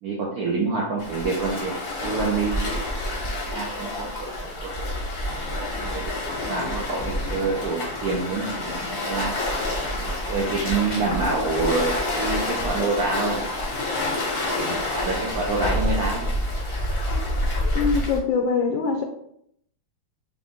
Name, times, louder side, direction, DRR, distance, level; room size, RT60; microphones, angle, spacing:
voice 1, 0.0-1.7 2.0-2.8 3.2-4.3 4.6-4.8 5.8-6.0 6.5-9.3 10.0-13.3 14.6-16.2, right 3 dB, 80° right, -3 dB, 0.8 m, -27 dB
Waves surf, 1.0-18.2, left 1 dB, 45° left, 0.7 m, -28 dB
voice 2, 17.7-19.0, left 5 dB, 75° left, 4 dB, 1.1 m, -23 dB
4.5 x 2.6 x 3.6 m, 0.69 s
omnidirectional pair, 2.4 m